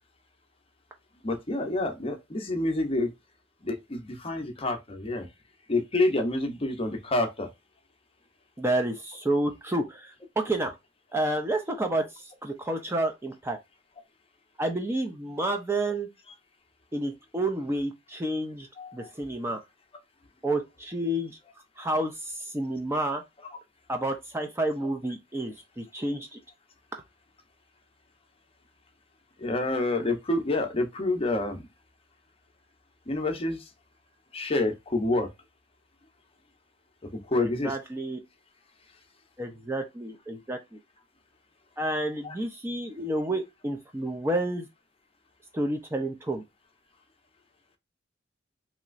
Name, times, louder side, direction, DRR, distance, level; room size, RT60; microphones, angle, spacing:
voice 1, 1.2-3.1 3.6-5.3 5.7-7.5 18.8-19.1 29.4-31.7 33.1-33.7 34.3-35.3 37.1-37.8 42.2-42.3, left 2 dB, 30° left, 0.7 m, -28 dB
voice 2, 8.6-10.7 11.1-13.6 14.6-16.1 16.9-18.7 18.9-19.6 20.4-21.4 21.8-23.2 23.9-26.4 37.4-38.2 39.4-40.8 41.8-44.7 45.5-46.4, right 1 dB, 15° right, 0.4 m, -30 dB
3.1 x 2.9 x 2.4 m
head